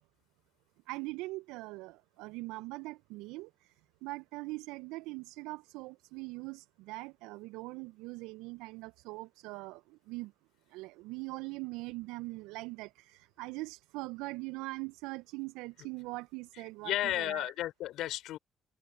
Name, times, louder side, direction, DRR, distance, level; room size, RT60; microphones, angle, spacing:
voice 1, 0.9-10.3 10.7-17.5, right 23 dB, 70° right, 1.3 m, -42 dB
voice 2, 16.8-18.4, left 14 dB, 65° left, 4.2 m, -33 dB
figure-of-eight pair, 45°, 0 cm